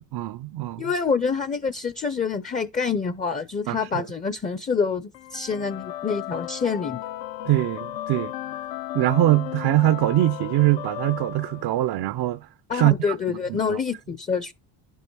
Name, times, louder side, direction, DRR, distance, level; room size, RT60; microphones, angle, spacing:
voice 1, 0.1-0.8 3.7-4.1 7.4-8.3 8.9-12.4 12.7-12.9 13.5-13.8, right 15 dB, 60° right, 0.5 m, -22 dB
voice 2, 0.8-7.0 12.7-14.5, left 5 dB, 20° left, 0.5 m, -26 dB
sound 1, 5.1-12.1, left 14 dB, 80° left, 0.8 m, -35 dB
11.0 x 5.5 x 4.5 m
cardioid pair, 100°, 44 cm